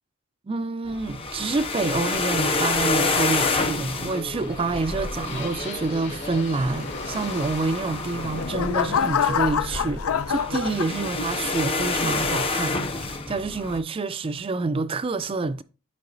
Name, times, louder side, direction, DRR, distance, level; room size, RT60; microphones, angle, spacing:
voice 1, 0.5-15.6, right 3 dB, 25° right, 0.3 m, -28 dB
sound 1, 0.9-13.8, left 3 dB, 25° left, 0.5 m, -28 dB
sound 2, 3.9-11.5, left 3 dB, 55° left, 1.9 m, -41 dB
sound 3, 7.9-11.5 12.0-12.4, left 7 dB, 85° left, 0.5 m, -26 dB
9.5 x 4.8 x 2.6 m
head